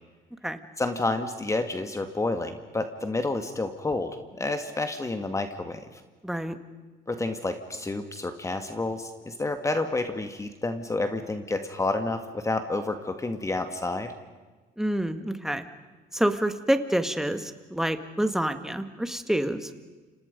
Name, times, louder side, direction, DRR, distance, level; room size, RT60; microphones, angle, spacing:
voice 1, 0.8-5.8 7.1-14.1, left 2 dB, 20° left, 7 dB, 1.9 m, -29 dB
voice 2, 6.2-6.6 14.8-15.7 16.1-19.7, right 1 dB, 5° right, 9 dB, 1.9 m, -27 dB
30.0 x 27.0 x 5.3 m, 1.3 s
cardioid pair, 110°, 17 cm